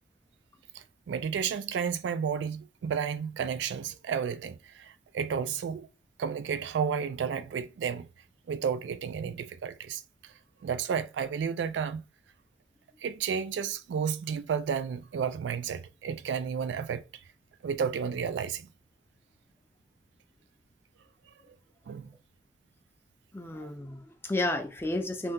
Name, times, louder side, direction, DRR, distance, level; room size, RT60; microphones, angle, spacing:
voice 1, 0.7-5.9 6.2-8.1 8.5-10.3 10.6-12.0 13.0-17.0 17.6-18.7 21.9-22.1, right 7 dB, 90° right, 0.3 m, -32 dB
voice 2, 23.3-25.3, left 2 dB, 15° left, 0.4 m, -32 dB
2.7 x 2.2 x 3.6 m
head